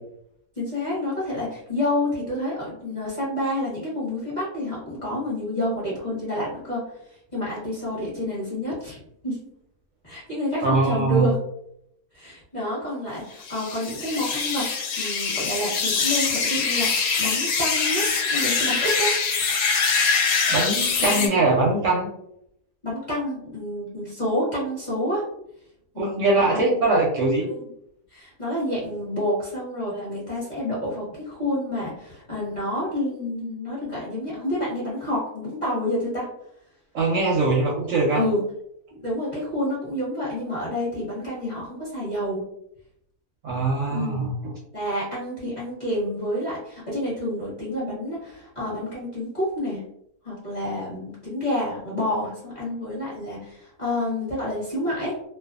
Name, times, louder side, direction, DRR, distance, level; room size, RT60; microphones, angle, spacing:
voice 1, 0.6-6.8 7.3-9.0 9.2-9.4 10.0-11.4 12.1-14.7 15.0-19.2 21.0-21.4 22.8-25.2 25.9-26.6 27.5-27.7 28.1-36.3 38.1-38.4 39.0-42.4 43.9-44.3 44.7-49.8 50.2-55.2, left 1 dB, 35° left, -8 dB, 0.8 m, -28 dB
voice 2, 10.6-11.3 20.5-22.1 26.0-27.5 36.9-38.2 43.4-44.5, right 3 dB, 70° right, -3 dB, 0.8 m, -22 dB
sound 1, 13.4-21.3, left 5 dB, 70° left, 0.8 m, -24 dB
2.5 x 2.2 x 2.3 m, 0.75 s
omnidirectional pair, 1.7 m